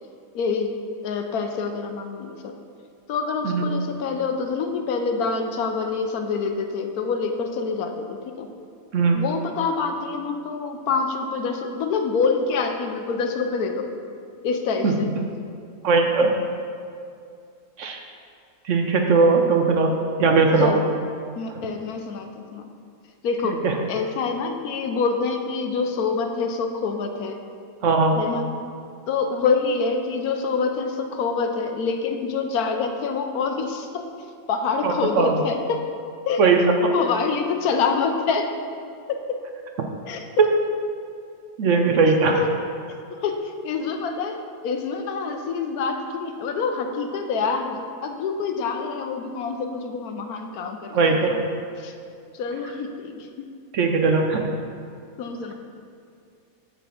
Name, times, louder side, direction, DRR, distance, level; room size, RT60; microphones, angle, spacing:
voice 1, 0.3-0.8 1.0-2.5 3.1-8.5 9.1-13.9 14.4-15.1 20.6-20.8 21.4-22.6 23.2-23.6 23.9-27.4 28.2-28.5 29.1-34.1 34.5-35.8 36.3-36.4 36.9-38.5 39.1-39.4 40.1-40.5 42.1-42.5 43.1-43.4 43.6-51.4 51.8-51.9 52.3-53.5 55.2-55.5, left 5 dB, 75° left, 5 dB, 1.2 m, -26 dB
voice 2, 15.8-16.3 17.8-18.0 18.7-19.9 20.2-20.7 23.5-23.7 27.8-28.2 34.8-35.4 36.4-36.6 41.6-42.4 50.9-51.3 53.7-54.4, right 4 dB, 60° right, 3 dB, 1.0 m, -19 dB
7.5 x 4.7 x 6.9 m, 2.4 s
omnidirectional pair, 1.6 m